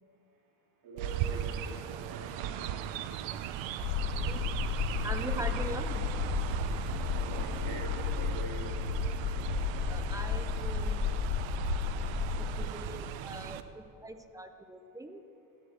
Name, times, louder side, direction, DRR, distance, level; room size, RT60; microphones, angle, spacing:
voice 1, 0.8-2.5 7.1-8.8, right 4 dB, 55° right, -3 dB, 3.5 m, -44 dB
Chirp tweet, 1.0-13.6, right 9 dB, 85° right, 0.8 m, -37 dB
sound 1, 3.8-13.3, left 8 dB, 65° left, 0.9 m, -33 dB
voice 2, 5.0-6.0 9.9-11.0 12.6-15.2, right 2 dB, 10° right, 7 dB, 0.3 m, -42 dB
13.5 x 9.9 x 7.7 m, 2.8 s
cardioid pair, 180°, 44 cm